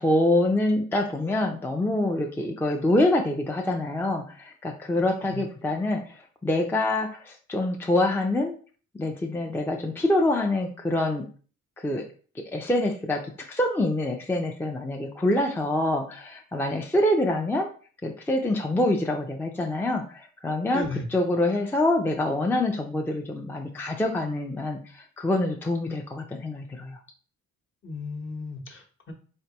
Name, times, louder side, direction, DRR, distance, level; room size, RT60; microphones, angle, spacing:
voice 1, 0.0-8.6 8.9-11.3 11.8-12.0 12.4-17.7 18.0-27.0, left 1 dB, 10° left, 2 dB, 0.5 m, -26 dB
voice 2, 20.7-21.0 27.8-29.1, left 3 dB, 40° left, 2 dB, 1.0 m, -35 dB
3.5 x 3.3 x 2.9 m, 0.41 s
cardioid pair, 90°, 30 cm